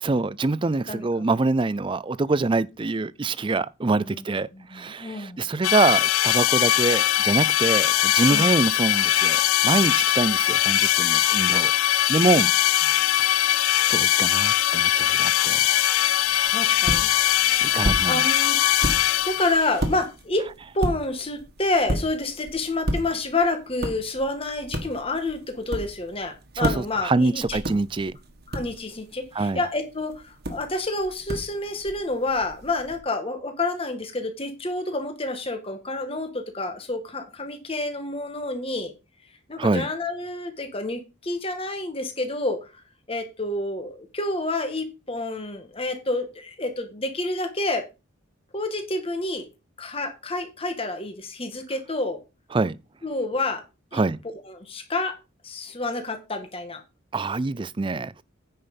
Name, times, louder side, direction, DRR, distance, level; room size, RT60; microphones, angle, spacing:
voice 1, 0.0-11.7 12.1-12.5 13.3-13.6 13.9-15.7 17.6-18.2 26.6-28.2 29.3-29.6 39.6-39.9 52.5-52.8 53.9-54.2 57.1-58.2, right 3 dB, 25° right, 0.4 m, -25 dB
voice 2, 0.9-1.3 3.9-4.2 4.5-5.5 8.3-8.5 12.2-12.5 16.5-17.1 18.1-18.8 19.2-20.5 20.7-27.6 28.5-38.9 39.5-42.7 43.1-47.8 48.5-49.5 49.8-52.2 53.0-53.6 53.9-54.0 54.5-55.1 55.4-56.8, left 2 dB, 25° left, 1.6 m, -29 dB
sound 1, 5.6-19.7, left 13 dB, 90° left, 0.4 m, -21 dB
sound 2, 16.2-33.0, equal, 50° right, 1.7 m, -34 dB
9.7 x 5.6 x 5.3 m
head